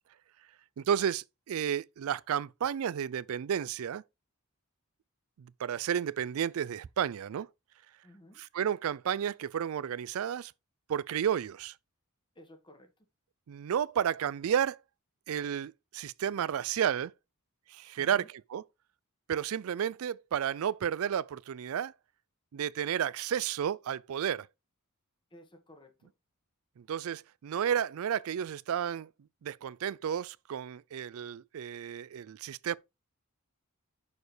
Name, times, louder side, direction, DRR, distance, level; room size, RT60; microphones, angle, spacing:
voice 1, 0.8-4.0 5.4-7.5 8.4-10.5 10.9-11.7 13.5-14.8 15.3-17.1 17.7-18.6 19.3-21.9 22.5-24.5 26.8-29.1 29.4-32.8, right 8 dB, 65° right, 0.3 m, -32 dB
voice 2, 8.0-8.4 12.3-12.9 18.0-18.3 25.3-26.1, left 1 dB, 20° left, 1.4 m, -55 dB
6.8 x 6.4 x 3.3 m
head